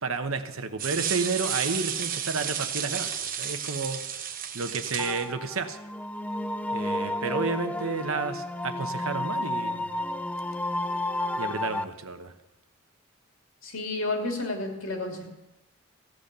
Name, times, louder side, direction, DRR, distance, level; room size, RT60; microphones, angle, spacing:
voice 1, 0.0-4.0 4.5-5.8 6.7-9.9 11.4-12.3, right 4 dB, 75° right, 8 dB, 1.0 m, -31 dB
sound 1, 0.8-5.2, right 8 dB, 40° right, 0.9 m, -32 dB
sound 2, 5.0-11.8, left 1 dB, 5° left, 0.3 m, -31 dB
voice 2, 13.6-15.3, left 2 dB, 75° left, 1 dB, 2.7 m, -31 dB
15.0 x 7.9 x 6.8 m, 1.0 s
head